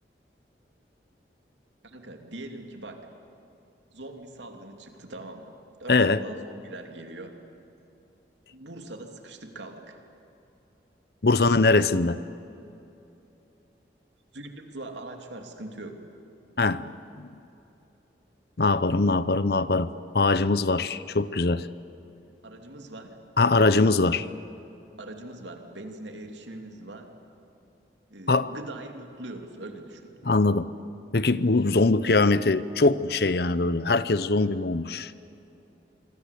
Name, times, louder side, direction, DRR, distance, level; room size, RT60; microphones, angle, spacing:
voice 1, 1.8-3.1 3.9-7.3 8.5-10.0 11.3-11.7 14.3-16.0 22.4-23.2 23.5-24.0 25.0-27.1 28.1-30.1, right 2 dB, 90° right, 4 dB, 3.0 m, -41 dB
voice 2, 5.9-6.2 11.2-12.2 16.6-17.3 18.6-21.7 23.4-24.2 28.3-28.5 30.2-30.7 31.1-35.1, left 3 dB, 60° left, 15 dB, 0.8 m, -22 dB
26.0 x 25.0 x 8.4 m, 2.8 s
head